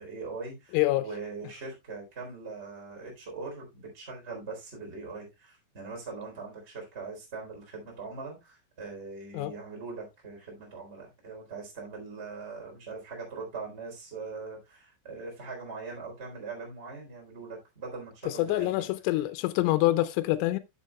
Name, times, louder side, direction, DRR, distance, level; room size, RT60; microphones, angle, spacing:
voice 1, 0.0-18.9, right 4 dB, 15° right, 3.3 m, -41 dB
voice 2, 0.7-1.1 9.3-9.5 18.3-20.6, left 17 dB, 80° left, 2.9 m, -26 dB
14.0 x 6.9 x 2.3 m
omnidirectional pair, 5.6 m